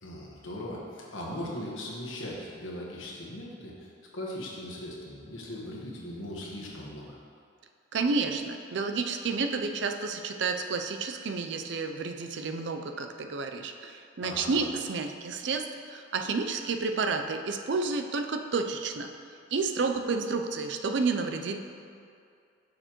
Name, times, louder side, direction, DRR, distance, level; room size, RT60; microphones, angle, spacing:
voice 1, 0.0-7.2 14.2-14.6, left 1 dB, 85° left, -3 dB, 1.2 m, -39 dB
voice 2, 7.9-19.1 19.5-21.6, right 4 dB, 65° right, 6 dB, 0.4 m, -30 dB
6.7 x 6.5 x 3.0 m, 2.4 s
head